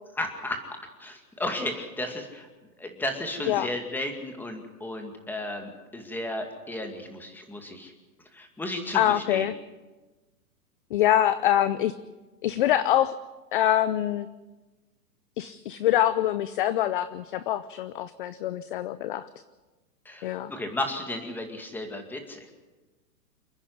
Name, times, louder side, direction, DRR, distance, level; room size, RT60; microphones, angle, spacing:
voice 1, 0.2-0.7 1.0-2.5 2.8-7.9 8.3-9.5 20.1-22.5, left 1 dB, 5° left, 4 dB, 2.2 m, -34 dB
voice 2, 8.9-9.5 10.9-11.9 12.4-13.1 13.5-14.3 15.4-19.3 20.2-20.5, left 12 dB, 35° left, 15 dB, 0.6 m, -24 dB
28.5 x 10.0 x 9.6 m, 1.2 s
hypercardioid pair, 150°, 47 cm